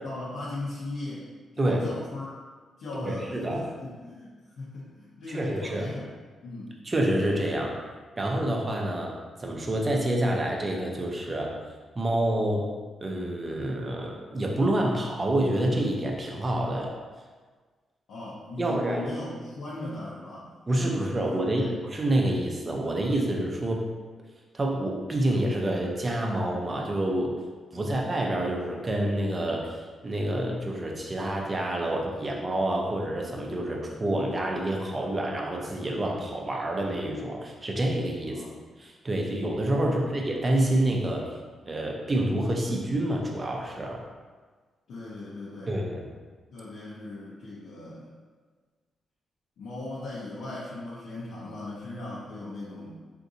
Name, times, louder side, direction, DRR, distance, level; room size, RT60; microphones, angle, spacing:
voice 1, 0.0-1.3 1.5-2.3 2.8-6.1 6.4-6.8 18.1-20.5 20.9-21.8 27.7-27.9 38.3-38.6 39.8-40.1 44.9-45.8 46.5-48.1 49.6-53.0, left 2 dB, 75° left, -8 dB, 0.7 m, -38 dB
voice 2, 2.9-3.6 5.3-5.9 6.8-7.8 8.2-9.1 9.4-11.5 12.0-12.6 13.0-16.9 18.6-19.1 20.7-23.8 24.5-27.4 27.7-29.8 30.0-38.4 38.8-41.2 41.7-44.0 45.7-46.1, right 1 dB, 20° right, -1 dB, 0.4 m, -27 dB
3.8 x 2.5 x 2.6 m, 1.5 s
wide cardioid pair, 150°, 0 cm